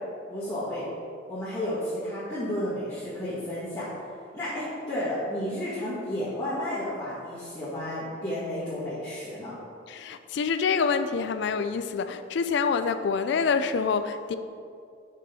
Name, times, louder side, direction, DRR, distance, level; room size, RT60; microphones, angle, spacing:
voice 1, 0.3-0.8 1.3-3.9 4.3-9.5, left 1 dB, 15° left, -13 dB, 1.7 m, -32 dB
voice 2, 9.9-14.4, left 5 dB, 60° left, 11 dB, 0.3 m, -26 dB
6.1 x 4.5 x 5.4 m, 2.4 s
head